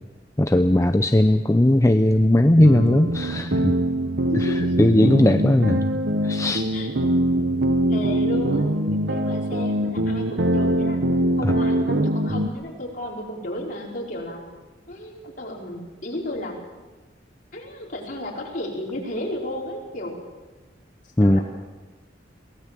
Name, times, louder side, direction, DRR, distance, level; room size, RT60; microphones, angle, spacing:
voice 1, 0.4-3.7 4.4-5.9 6.2-6.6 11.4-11.5 21.2-21.4, left 1 dB, 15° left, 7 dB, 0.6 m, -18 dB
sound 1, 2.6-12.5, right 1 dB, 65° right, 1.1 m, -23 dB
voice 2, 4.3-4.7 6.7-6.9 7.9-11.0 11.4-14.4 14.9-16.6 17.5-20.2 21.2-21.4, left 1 dB, 45° left, -2 dB, 4.8 m, -33 dB
23.5 x 18.0 x 7.6 m, 1.2 s
head